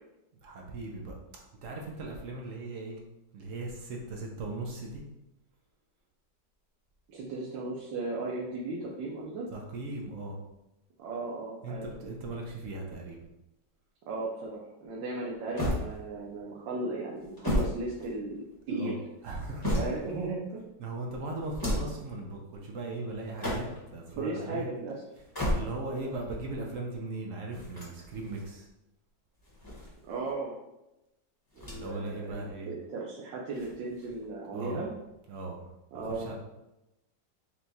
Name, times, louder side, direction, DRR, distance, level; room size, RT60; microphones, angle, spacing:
voice 1, 0.4-1.2 1.6-3.0 3.3-5.0 9.5-10.4 11.6-13.2 18.7-19.8 20.8-23.7 23.9-24.7 25.5-28.7 31.7-32.7 34.5-34.9 35.3-35.7 35.9-36.3, right 2 dB, 65° right, 0 dB, 0.8 m, -38 dB
voice 2, 7.1-9.5 11.0-11.9 14.1-18.9 19.7-20.6 24.1-25.0 26.0-26.1 30.0-30.6 31.6-34.9 35.9-36.3, right 3 dB, 85° right, -3 dB, 1.4 m, -36 dB
sound 1, 15.6-16.4 17.2-18.6 19.2-20.3 21.4-22.1 23.2-24.0 25.1-26.0 27.5-28.5 29.4-30.3 31.5-32.1 32.4-32.5 33.5-34.3, left 1 dB, 15° left, 0.9 m, -34 dB
4.5 x 2.3 x 4.0 m, 0.93 s
omnidirectional pair, 1.9 m